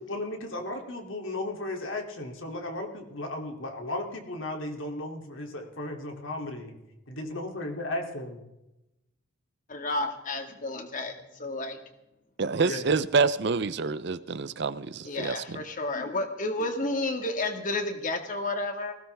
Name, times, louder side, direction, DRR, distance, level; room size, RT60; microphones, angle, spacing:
voice 1, 0.1-6.7 7.1-8.4 12.6-12.9, left 1 dB, 70° left, 2 dB, 3.0 m, -35 dB
voice 2, 9.7-11.8 14.6-14.7 15.0-19.0, left 2 dB, 40° left, 5 dB, 2.0 m, -31 dB
voice 3, 12.4-15.3, right 4 dB, 55° right, 15 dB, 0.6 m, -27 dB
20.0 x 17.0 x 3.5 m, 0.91 s
head